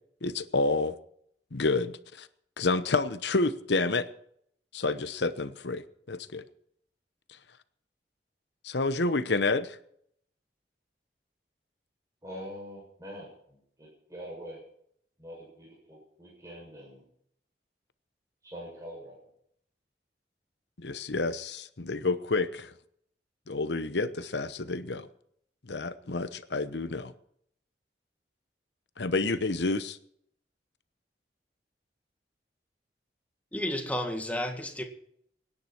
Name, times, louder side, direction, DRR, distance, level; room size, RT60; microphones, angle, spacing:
voice 1, 0.2-1.0 1.5-2.3 2.6-4.1 4.7-6.4 8.6-9.8 20.8-22.7 23.5-25.1 25.6-27.1 29.0-30.0, left 3 dB, 80° left, 1.0 m, -29 dB
voice 2, 12.2-14.6 15.2-17.0 18.4-19.2, equal, 20° right, 7.0 m, -44 dB
voice 3, 33.5-34.8, left 1 dB, 10° left, 1.9 m, -32 dB
24.0 x 10.5 x 4.5 m
head